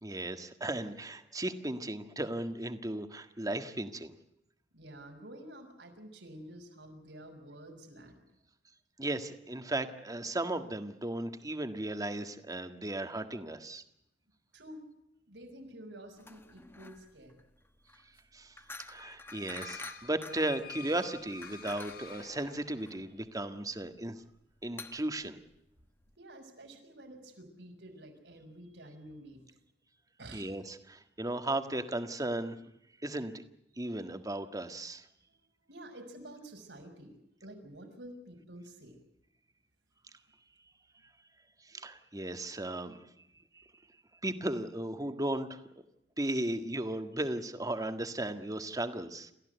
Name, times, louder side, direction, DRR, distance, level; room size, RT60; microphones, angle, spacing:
voice 1, 0.0-4.1 9.0-13.8 18.3-18.5 18.9-24.2 24.6-25.4 30.3-32.6 33.0-33.3 33.8-35.1 41.7-43.0 43.5-43.6 44.2-45.6 46.2-49.3, right 1 dB, 20° right, 8 dB, 1.7 m, -36 dB
voice 2, 4.7-8.2 14.5-14.8 15.3-17.4 26.2-29.4 30.2-30.5 35.2-39.0, right 1 dB, 85° right, 3 dB, 6.2 m, -50 dB
sound 1, 16.2-26.2, left 2 dB, 15° left, 1.1 m, -49 dB
sound 2, 18.9-23.1, left 6 dB, 60° left, 1.6 m, -49 dB
29.0 x 15.0 x 8.1 m, 0.83 s
head